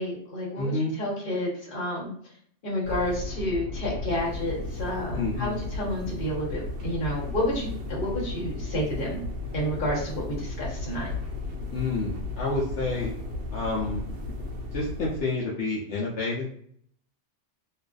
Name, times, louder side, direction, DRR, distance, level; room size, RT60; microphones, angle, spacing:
voice 1, 0.0-2.1 2.6-9.3 9.5-11.1, equal, 50° left, -5 dB, 1.1 m, -30 dB
voice 2, 0.6-1.0 5.1-5.6 11.7-13.1 13.5-14.0 14.7-16.5, left 3 dB, 75° left, -5 dB, 0.9 m, -29 dB
sound 1, 2.8-15.2, left 3 dB, 60° right, 0.7 m, -34 dB
2.5 x 2.3 x 2.2 m, 0.63 s
omnidirectional pair, 1.2 m